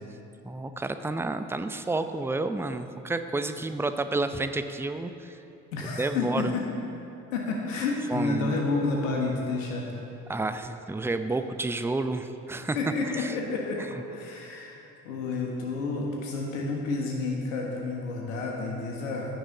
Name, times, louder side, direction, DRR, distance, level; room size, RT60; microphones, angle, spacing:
voice 1, 0.4-5.4 6.0-6.5 8.1-8.5 10.3-12.8 13.2-13.3, right 2 dB, 5° right, 9 dB, 0.7 m, -30 dB
voice 2, 5.7-6.6 7.3-9.9 12.7-14.8 15.0-19.4, left 3 dB, 80° left, -1 dB, 1.4 m, -30 dB
15.0 x 10.5 x 3.9 m, 2.9 s
hypercardioid pair, 50°, 39 cm